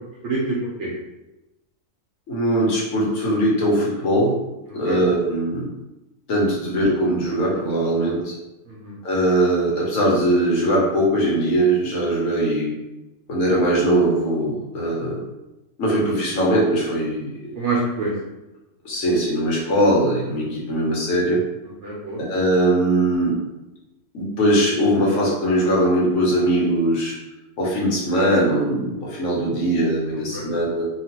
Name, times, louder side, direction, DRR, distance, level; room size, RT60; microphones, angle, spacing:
voice 1, 0.2-0.9 4.8-5.0 8.7-9.0 17.5-18.1 21.8-22.2 30.3-30.5, right 2 dB, 65° right, -5 dB, 0.9 m, -26 dB
voice 2, 2.3-4.3 4.7-5.7 6.3-8.3 9.0-12.7 13.3-15.2 15.8-17.5 18.8-21.4 22.2-23.4 24.1-27.1 27.6-30.9, right 1 dB, 75° left, -5 dB, 1.3 m, -20 dB
2.9 x 2.4 x 2.9 m, 0.99 s
omnidirectional pair, 1.4 m